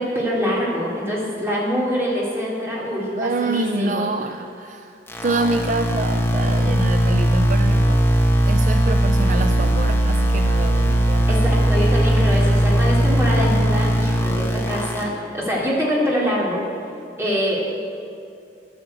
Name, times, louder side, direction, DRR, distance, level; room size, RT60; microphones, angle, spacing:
voice 1, 0.0-4.1 11.3-16.6 17.2-17.7, equal, 15° right, -5 dB, 3.1 m, -24 dB
voice 2, 3.2-11.4, right 3 dB, 45° right, 7 dB, 0.4 m, -27 dB
sound 1, 5.1-15.0, right 1 dB, 15° left, 1.3 m, -18 dB
12.0 x 9.2 x 7.8 m, 2.5 s
head